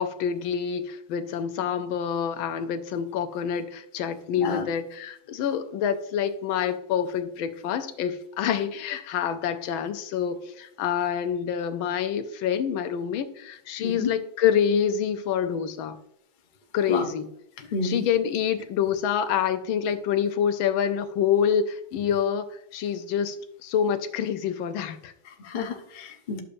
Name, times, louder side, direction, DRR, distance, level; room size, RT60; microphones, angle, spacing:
voice 1, 0.0-16.0 16.7-17.3 17.8-22.4 22.7-23.4 23.6-25.1, left 8 dB, 85° left, 9 dB, 1.5 m, -27 dB
voice 2, 4.3-4.7 13.8-14.1 16.9-17.1 17.7-18.1 25.3-26.4, left 4 dB, 55° left, 2 dB, 0.5 m, -30 dB
11.0 x 6.7 x 2.6 m, 0.76 s
omnidirectional pair, 2.1 m